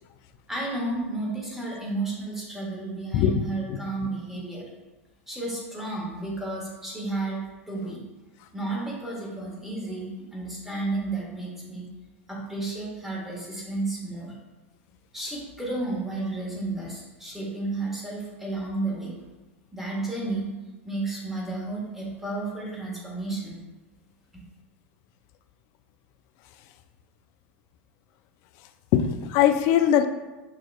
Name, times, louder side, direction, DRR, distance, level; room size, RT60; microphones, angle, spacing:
voice 1, 0.5-4.7 5.3-7.4 7.7-8.0 8.5-11.8 12.3-14.3 15.1-19.2 19.7-20.5 20.8-23.6, right 2 dB, 5° right, -4 dB, 1.5 m, -32 dB
voice 2, 28.9-30.0, left 10 dB, 45° left, 10 dB, 0.3 m, -21 dB
6.6 x 2.8 x 2.3 m, 1.2 s
hypercardioid pair, 90°, 7 cm